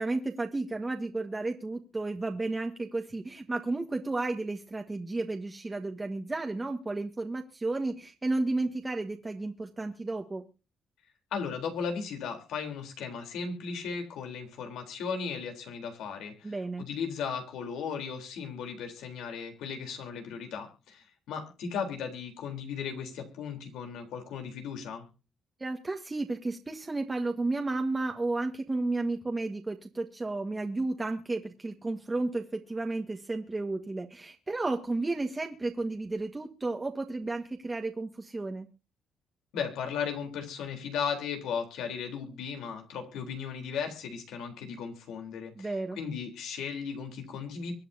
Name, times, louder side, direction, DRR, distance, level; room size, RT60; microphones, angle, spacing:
voice 1, 0.0-10.4 16.4-16.9 25.6-38.7 45.6-46.0, right 2 dB, 20° right, 3 dB, 1.7 m, -32 dB
voice 2, 11.3-25.1 39.5-47.7, left 6 dB, 85° left, 5 dB, 3.8 m, -36 dB
24.0 x 9.1 x 2.8 m, 0.33 s
cardioid pair, 90°, 0 cm